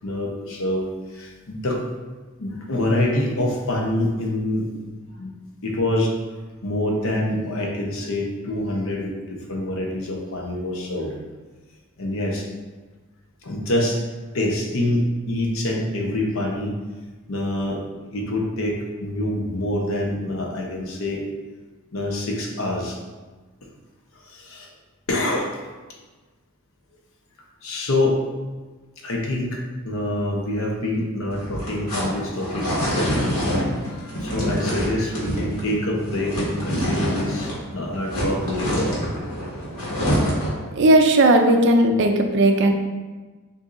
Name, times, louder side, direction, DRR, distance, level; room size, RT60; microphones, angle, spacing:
voice 1, 0.0-1.8 2.4-4.7 5.1-5.3 5.6-6.1 6.6-11.2 12.0-12.5 13.4-14.0 14.3-16.7 17.3-21.2 21.9-23.0 24.2-24.7 25.1-25.5 27.6-28.2 29.0-39.1, left 1 dB, 70° left, 0 dB, 0.8 m, -26 dB
sound 1, 31.3-37.6 37.9-40.6, equal, 85° left, 1.4 m, -26 dB
voice 2, 40.7-42.7, right 1 dB, 55° right, 5 dB, 0.4 m, -16 dB
6.5 x 2.7 x 2.5 m, 1.3 s
head